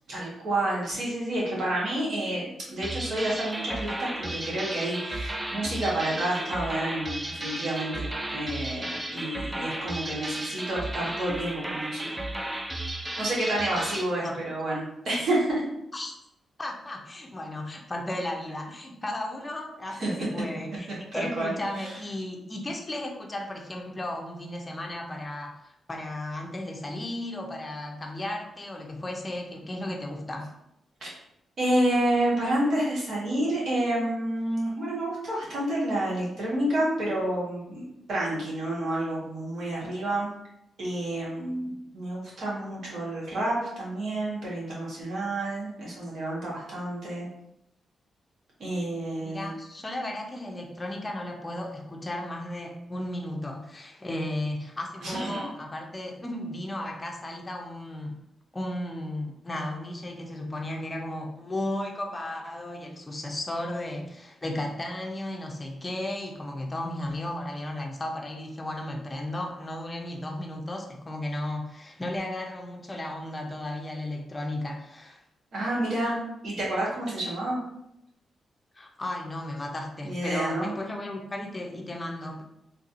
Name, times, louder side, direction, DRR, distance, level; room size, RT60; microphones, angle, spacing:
voice 1, 0.1-12.2 13.2-15.6 19.9-20.1 21.1-21.5 21.8-21.9 31.0-31.1 31.6-40.3 40.8-47.3 48.6-49.5 55.0-55.4 75.5-76.2 76.4-77.6 80.0-80.7, right 1 dB, 65° right, -5 dB, 1.4 m, -29 dB
sound 1, 2.8-14.1, right 1 dB, 15° right, 0.4 m, -34 dB
voice 2, 16.6-30.5 49.2-58.2 58.5-75.2 78.8-82.4, left 1 dB, 25° left, 2 dB, 0.7 m, -34 dB
3.2 x 2.6 x 2.6 m, 0.81 s
cardioid pair, 65°, 0 cm